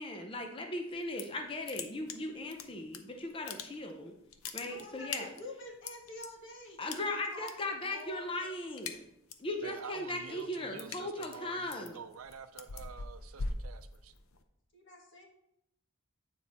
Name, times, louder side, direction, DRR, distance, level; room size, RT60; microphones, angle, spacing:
voice 1, 0.0-4.1 4.5-5.3 6.8-9.0 9.4-12.0, left 1 dB, 25° left, 3 dB, 0.6 m, -38 dB
sound 1, 0.9-1.4 1.7-3.0 3.3-4.0 4.3-6.3 6.9-7.5 7.8-8.2 8.5-9.5 9.9-14.4, left 4 dB, 80° left, 0.7 m, -41 dB
voice 2, 4.6-7.0 7.3-8.5 14.7-15.3, left 1 dB, 60° left, 0 dB, 1.7 m, -48 dB
voice 3, 9.6-14.1, right 6 dB, 80° right, 10 dB, 0.5 m, -48 dB
9.2 x 4.5 x 4.1 m, 0.80 s
head